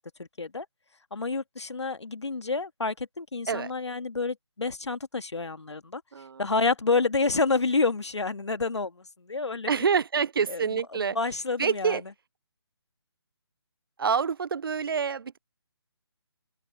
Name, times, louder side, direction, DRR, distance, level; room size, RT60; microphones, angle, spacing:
voice 1, 0.2-0.7 1.1-6.0 6.4-9.7 10.5-10.6 11.2-12.0, left 3 dB, 85° left, 1.8 m, -28 dB
voice 2, 6.1-6.5 9.7-11.2 11.6-12.0 14.0-15.4, right 6 dB, 55° right, 0.5 m, -27 dB
open air
figure-of-eight pair, 160°, 14 cm